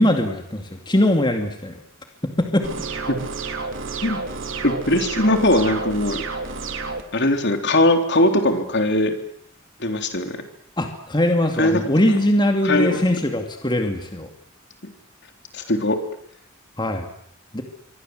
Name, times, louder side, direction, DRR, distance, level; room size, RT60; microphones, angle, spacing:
voice 1, 0.0-1.8 2.2-2.7 10.8-14.3 16.8-17.1 17.5-17.6, left 1 dB, 20° left, 4 dB, 2.5 m, -21 dB
sound 1, 2.6-7.0, right 4 dB, 65° right, 3.6 m, -30 dB
voice 2, 4.6-6.2 7.1-9.2 9.8-10.4 11.6-11.8 12.6-13.0 15.5-16.0, left 1 dB, 55° left, 6 dB, 3.6 m, -20 dB
27.0 x 24.0 x 8.0 m, 0.69 s
head